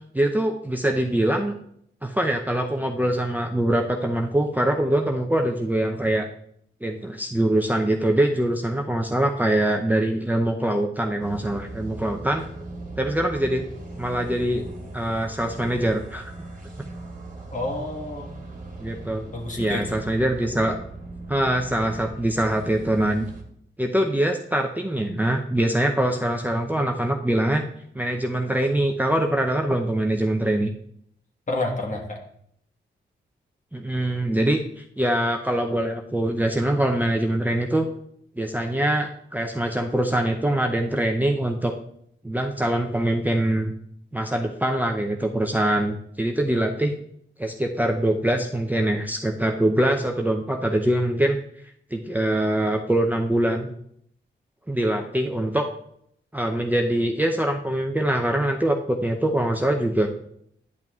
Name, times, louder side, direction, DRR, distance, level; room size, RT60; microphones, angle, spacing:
voice 1, 0.1-1.5 2.0-6.3 6.8-12.4 13.0-13.7 14.0-14.7 14.9-16.3 18.8-19.2 19.6-20.8 21.3-23.3 23.8-27.6 27.9-30.7 33.7-37.8 38.4-41.7 42.2-43.7 44.1-46.9 47.4-51.4 51.6-53.7 54.7-55.7 56.3-60.1, right 1 dB, 10° right, 2 dB, 0.6 m, -23 dB
sound 1, 11.2-23.4, right 2 dB, 40° right, 1.6 m, -39 dB
voice 2, 17.5-18.3 19.3-20.0 31.5-32.2, left 2 dB, 40° left, 0 dB, 1.5 m, -29 dB
10.5 x 5.8 x 2.4 m, 0.70 s
cardioid pair, 65°, 20 cm